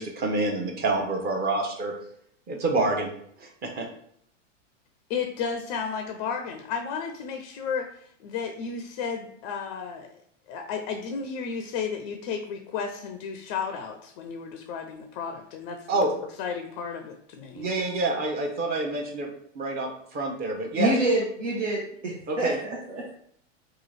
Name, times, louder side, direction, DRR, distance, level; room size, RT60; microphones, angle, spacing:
voice 1, 0.0-1.9 2.5-3.1 3.4-3.9 15.9-16.1 17.5-19.3 19.5-20.9 22.3-22.6, right 2 dB, 25° right, 1 dB, 0.8 m, -27 dB
voice 2, 5.1-10.1 10.5-16.1 16.4-17.7, left 6 dB, 35° left, 5 dB, 0.4 m, -33 dB
voice 3, 20.8-23.1, right 1 dB, 75° right, -3 dB, 1.0 m, -27 dB
3.0 x 2.4 x 3.9 m, 0.67 s
hypercardioid pair, 100°, 38 cm